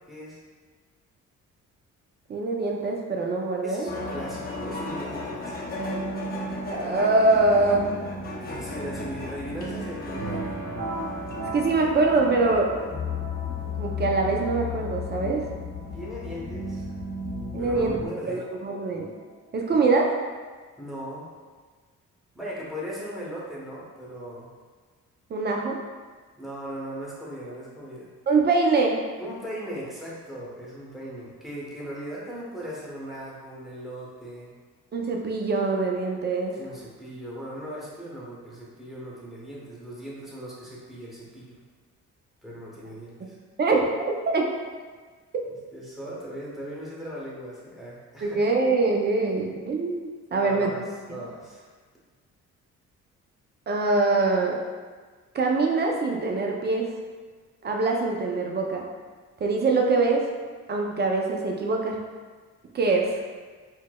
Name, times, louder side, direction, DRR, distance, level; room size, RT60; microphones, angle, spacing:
voice 1, 0.1-0.4 3.6-5.5 8.4-10.5 15.9-16.9 17.6-18.4 20.8-21.3 22.3-24.5 26.4-28.1 29.2-34.5 36.5-41.6 42.4-43.4 45.7-48.4 50.3-50.8 51.1-51.7, equal, ahead, -6 dB, 1.0 m, -38 dB
voice 2, 2.3-3.9 6.7-7.9 11.5-12.7 13.8-15.5 17.5-18.0 18.3-19.1 19.5-20.1 25.3-25.8 28.3-29.0 34.9-36.6 43.6-44.5 48.2-50.7 53.7-54.6 55.3-56.9 57.6-58.8 59.4-60.2 60.7-62.0 62.7-63.2, right 3 dB, 35° right, 0 dB, 0.5 m, -23 dB
sound 1, 3.9-18.1, left 2 dB, 30° left, 0.7 m, -34 dB
sound 2, 10.2-19.7, right 1 dB, 55° right, 1.0 m, -40 dB
4.5 x 2.1 x 2.2 m, 1.4 s
cardioid pair, 90°, 30 cm